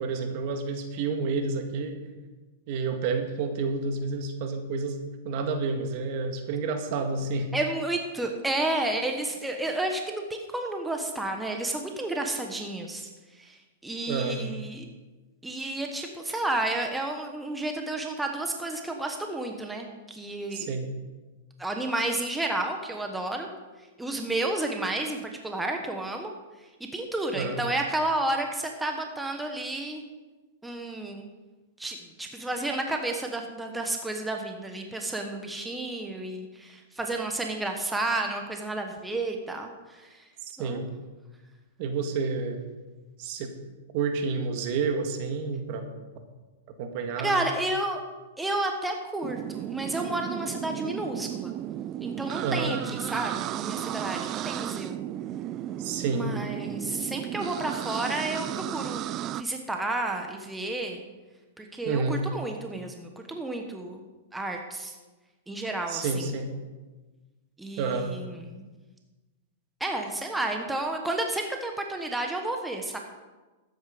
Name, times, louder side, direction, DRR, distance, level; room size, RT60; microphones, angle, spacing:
voice 1, 0.0-2.0 2.7-5.0 5.2-7.5 14.1-14.5 20.5-20.9 27.3-27.6 40.4-40.9 41.8-42.7 43.2-43.5 43.9-45.9 46.8-47.4 52.4-52.8 55.8-56.3 61.9-62.2 65.9-66.5 67.8-68.1, right 4 dB, 50° right, 6 dB, 1.7 m, -29 dB
voice 2, 7.5-13.1 13.3-14.8 15.4-20.7 21.6-23.5 24.0-26.3 26.8-30.0 30.6-31.3 31.8-40.2 40.6-40.9 47.2-48.0 48.4-51.5 52.0-55.0 56.1-61.0 61.6-64.0 64.3-64.9 65.5-66.3 67.6-68.7 69.8-73.0, right 2 dB, 5° right, 3 dB, 1.2 m, -31 dB
sound 1, 49.2-59.4, right 12 dB, 35° right, 0.4 m, -34 dB
12.5 x 9.4 x 5.1 m, 1.2 s
hypercardioid pair, 130°, 0 cm